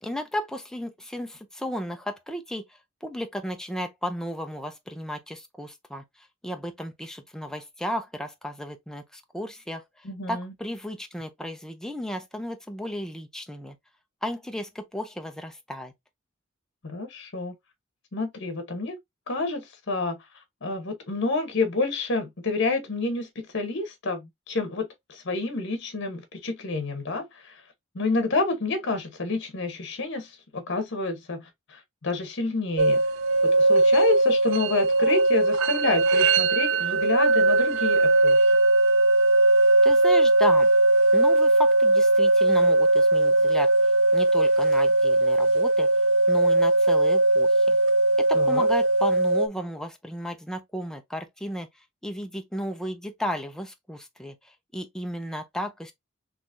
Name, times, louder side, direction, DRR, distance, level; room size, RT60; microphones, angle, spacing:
voice 1, 0.0-2.6 3.0-13.8 14.2-15.9 39.8-40.7 41.1-43.7 44.1-45.9 46.3-47.8 48.2-51.7 52.0-55.9, equal, 5° left, 0.5 m, -34 dB
voice 2, 10.0-10.5 16.8-17.5 18.1-19.0 19.3-27.6 27.9-33.0 33.4-38.4 48.3-48.7, left 3 dB, 60° left, 1.0 m, -29 dB
sound 1, 32.8-49.5, right 2 dB, 75° right, 0.4 m, -20 dB
3.8 x 3.0 x 2.6 m
head